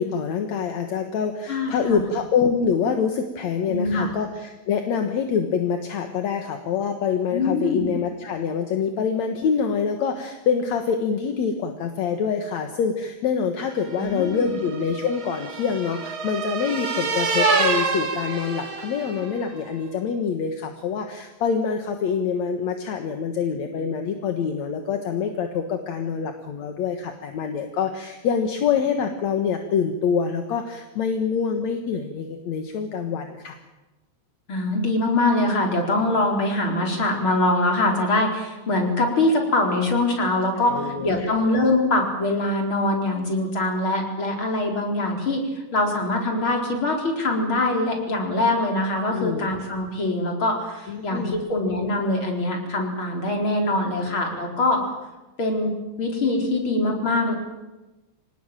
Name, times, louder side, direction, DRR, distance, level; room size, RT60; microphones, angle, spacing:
voice 1, 0.0-33.6 40.6-41.3 49.1-49.5 50.9-51.4, left 6 dB, 70° left, 5 dB, 2.7 m, -25 dB
voice 2, 1.5-2.0 3.7-4.1 7.3-7.9 14.0-14.6 34.5-45.4 45.7-54.8 55.4-57.3, left 2 dB, 45° left, 1 dB, 5.0 m, -23 dB
sound 1, 13.9-19.4, right 4 dB, 45° right, 3.1 m, -26 dB
26.0 x 18.5 x 9.0 m, 1.1 s
omnidirectional pair, 3.3 m